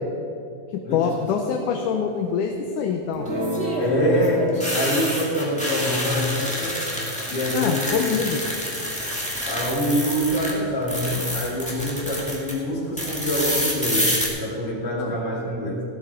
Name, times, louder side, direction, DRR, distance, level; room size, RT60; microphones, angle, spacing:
voice 1, 0.7-3.3 7.5-8.4 12.7-12.8 15.0-15.2, left 6 dB, 75° left, 3 dB, 2.1 m, -25 dB
sound 1, 0.9-1.4 3.3-10.5 10.8-12.5 13.0-14.3, equal, 5° left, 1.7 m, -28 dB
Guitar, 3.1-9.7, right 1 dB, 40° right, 1.0 m, -34 dB
voice 2, 3.8-6.8 7.3-7.9 9.4-14.1 14.4-15.8, equal, 35° left, -5 dB, 3.7 m, -25 dB
16.5 x 12.5 x 4.4 m, 2.6 s
omnidirectional pair, 4.0 m